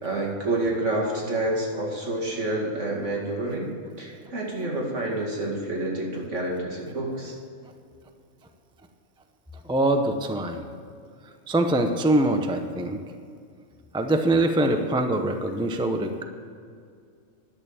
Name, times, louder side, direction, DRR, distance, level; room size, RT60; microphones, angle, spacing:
voice 1, 0.0-3.7 4.0-7.4, right 2 dB, 65° right, -3 dB, 2.6 m, -28 dB
voice 2, 9.6-10.6 11.5-13.0 13.9-16.2, right 1 dB, 5° right, 5 dB, 0.5 m, -23 dB
11.0 x 6.7 x 8.7 m, 2.3 s
omnidirectional pair, 1.4 m